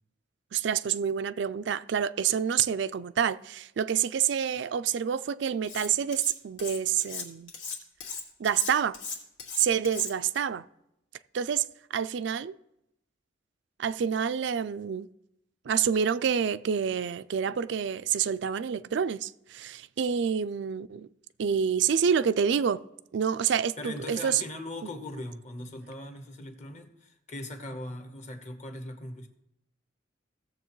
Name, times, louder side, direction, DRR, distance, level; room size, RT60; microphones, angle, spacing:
voice 1, 0.5-7.5 8.4-9.0 9.6-10.6 11.3-11.6 11.9-12.5 13.8-15.1 15.7-21.1 21.4-22.8 23.1-24.4, right 7 dB, 65° right, 0.3 m, -27 dB
Cutlery silverware, 5.6-6.3 6.6-10.4, left 5 dB, 90° left, 2.2 m, -38 dB
voice 2, 23.8-29.3, left 1 dB, 35° left, 1.1 m, -40 dB
17.0 x 7.1 x 3.1 m
head